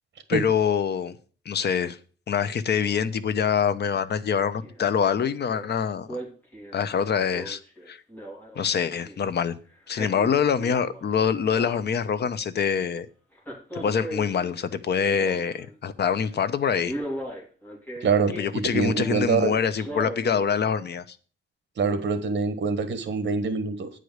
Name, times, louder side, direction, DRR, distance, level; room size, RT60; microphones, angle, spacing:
voice 1, 0.3-1.2 1.5-2.0 2.3-6.2 6.7-7.6 7.9-8.0 8.6-9.5 9.9-13.1 13.7-17.0 18.4-21.2, left 7 dB, 55° left, 0.8 m, -25 dB
Male speech man speaking, 4.6-4.9 5.2-5.7 6.1-9.3 9.7-11.1 11.4-12.2 13.4-15.7 16.2-16.4 16.9-19.3 19.7-20.5 20.9-21.0, right 1 dB, 10° left, 3.0 m, -38 dB
voice 2, 18.0-19.5 21.8-23.9, right 5 dB, 60° right, 1.5 m, -25 dB
9.2 x 5.0 x 7.9 m
wide cardioid pair, 150°, 21 cm